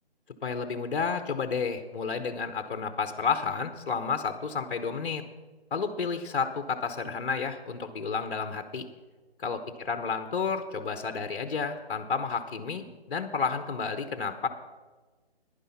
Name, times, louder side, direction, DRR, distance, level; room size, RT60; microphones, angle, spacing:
voice 1, 0.4-5.2 5.7-8.8 9.4-14.5, left 5 dB, 55° left, 9 dB, 0.9 m, -31 dB
10.5 x 10.0 x 5.6 m, 1.3 s
hypercardioid pair, 165°, 32 cm